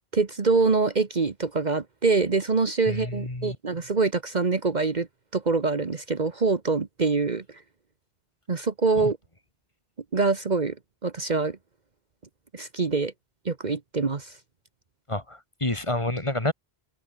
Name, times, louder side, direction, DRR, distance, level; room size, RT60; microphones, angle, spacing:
voice 1, 0.1-5.1 5.3-7.4 8.5-9.2 10.1-10.7 11.0-11.6 12.5-13.1 13.4-14.3, right 4 dB, 45° right, 1.3 m, -24 dB
voice 2, 2.9-3.6 9.0-9.1 15.1-16.5, left 2 dB, 30° left, 2.4 m, -29 dB
omnidirectional pair, 1.1 m